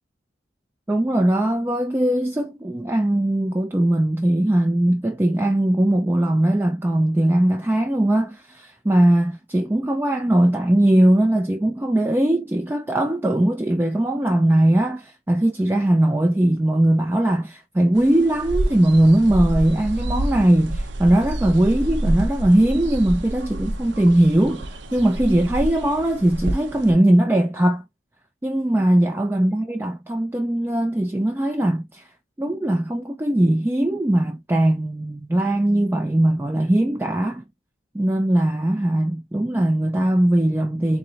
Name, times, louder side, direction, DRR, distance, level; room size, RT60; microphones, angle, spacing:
voice 1, 0.9-27.8 28.4-32.1 32.4-37.4 37.9-41.0, right 1 dB, 10° right, 0.3 m, -20 dB
sound 1, 18.0-26.9, right 1 dB, 70° right, 0.6 m, -28 dB
3.7 x 3.1 x 2.7 m
head